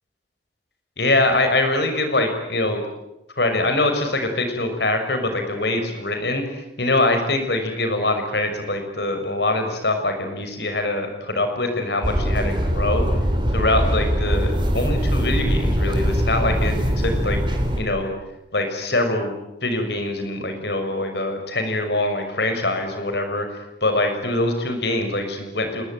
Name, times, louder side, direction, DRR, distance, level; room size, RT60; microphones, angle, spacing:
voice 1, 1.0-2.8 3.4-6.4 6.8-13.1 13.5-17.4 17.8-18.1 18.5-19.3 19.6-23.5 23.8-25.8, left 2 dB, 70° left, 6 dB, 6.4 m, -23 dB
sound 1, 12.0-17.8, equal, 25° right, 4.1 m, -22 dB
26.5 x 22.5 x 9.5 m, 0.91 s
head